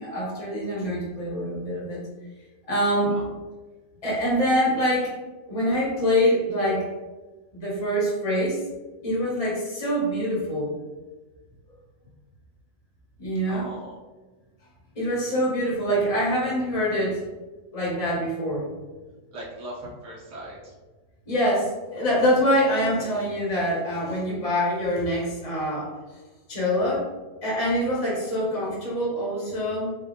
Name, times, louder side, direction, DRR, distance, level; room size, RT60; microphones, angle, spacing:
voice 1, 0.0-2.0 2.7-3.1 4.0-5.2 5.5-6.9 7.5-8.6 9.0-10.7 13.2-13.7 14.9-17.2 17.7-18.7 21.3-26.2 26.5-27.1 27.4-29.9, equal, 30° left, -6 dB, 1.2 m, -25 dB
voice 2, 13.4-14.0 19.3-20.7, right 1 dB, 65° right, -5 dB, 1.5 m, -39 dB
3.4 x 2.7 x 3.8 m, 1.2 s
omnidirectional pair, 1.4 m